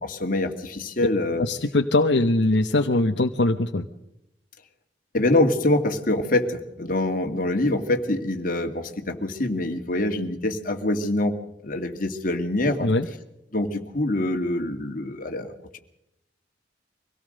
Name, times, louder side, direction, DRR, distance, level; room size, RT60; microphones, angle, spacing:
voice 1, 0.0-1.5 5.1-11.3 11.6-12.9 13.5-15.8, left 1 dB, 50° left, 5 dB, 2.2 m, -25 dB
voice 2, 1.4-3.8 12.8-13.1, left 2 dB, 70° left, 5 dB, 1.0 m, -21 dB
24.5 x 17.5 x 6.6 m, 0.85 s
head